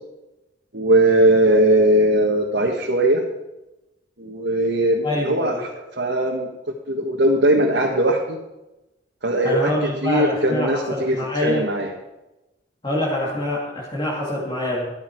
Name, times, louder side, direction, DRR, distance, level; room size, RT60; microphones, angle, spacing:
voice 1, 0.7-3.2 4.2-5.7 6.0-6.5 6.9-8.4 9.2-11.9, right 1 dB, 75° right, -2 dB, 1.7 m, -19 dB
voice 2, 5.0-5.7 9.4-11.6 12.8-14.9, left 1 dB, 30° left, -4 dB, 2.4 m, -25 dB
14.0 x 11.5 x 4.7 m, 0.98 s
head